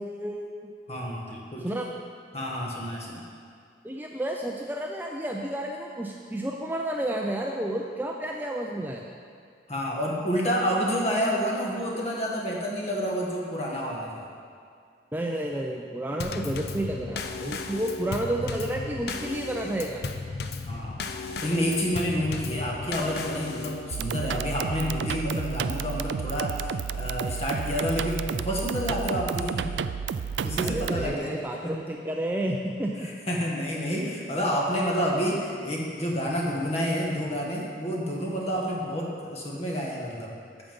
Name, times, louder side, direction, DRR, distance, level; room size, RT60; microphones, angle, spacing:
voice 1, 0.0-0.7 1.6-1.9 3.8-9.0 15.1-20.1 30.6-33.1, right 1 dB, 10° right, 0 dB, 0.4 m, -31 dB
voice 2, 0.9-1.7 2.3-3.2 9.7-14.3 20.7-21.1 21.4-29.7 30.4-31.3 31.6-31.7 33.0-40.4, equal, 35° left, -2 dB, 1.4 m, -29 dB
Drum kit / Snare drum / Bass drum, 16.2-23.9, left 3 dB, 55° left, 0.5 m, -35 dB
sound 1, 23.9-31.1, right 6 dB, 75° right, 0.3 m, -31 dB
8.8 x 7.2 x 5.3 m, 2.3 s
head